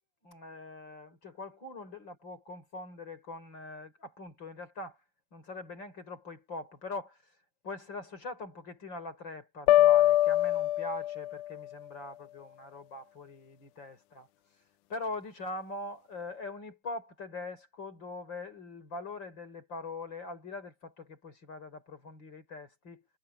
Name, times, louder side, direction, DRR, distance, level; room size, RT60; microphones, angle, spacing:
voice 1, 0.2-5.0 5.3-7.3 7.6-14.3 14.9-23.1, left 2 dB, 35° left, 4.0 m, -42 dB
sound 1, 9.7-11.6, left 14 dB, 80° left, 1.9 m, -23 dB
omnidirectional pair, 4.0 m